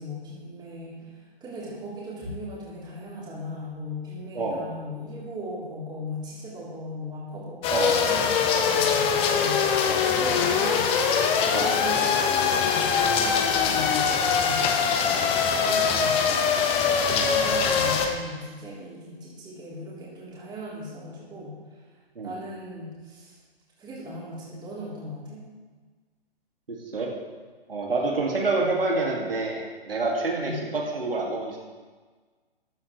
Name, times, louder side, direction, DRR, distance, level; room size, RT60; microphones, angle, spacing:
voice 1, 0.0-14.6 14.9-21.6 22.2-23.4 23.8-25.4 30.3-30.7, left 1 dB, 15° right, -6 dB, 3.7 m, -38 dB
voice 2, 4.3-4.7 7.7-7.9 9.8-10.0 11.5-11.7 17.1-17.3 22.2-22.3 26.7-27.1 27.7-31.6, right 3 dB, 70° right, -1 dB, 2.4 m, -27 dB
sound 1, 7.6-18.1, left 6 dB, 20° left, 0.9 m, -23 dB
13.5 x 11.5 x 3.3 m, 1.4 s
figure-of-eight pair, 120°, 30 cm